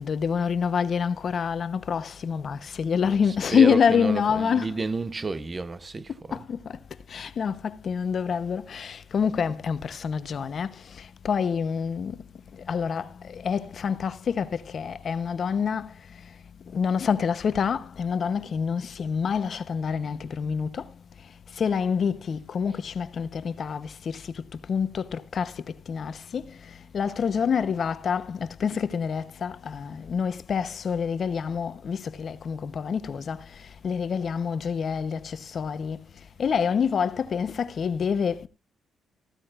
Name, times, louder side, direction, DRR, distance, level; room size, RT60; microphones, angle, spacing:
voice 1, 0.0-4.8 6.3-6.8 7.1-12.2 12.6-15.9 16.7-20.9 21.6-26.6 26.9-33.4 33.8-36.0 36.4-38.5, left 6 dB, 50° left, 1.0 m, -27 dB
voice 2, 3.1-6.4, right 3 dB, 25° right, 0.9 m, -31 dB
15.0 x 13.0 x 2.5 m
cardioid pair, 90°, 0 cm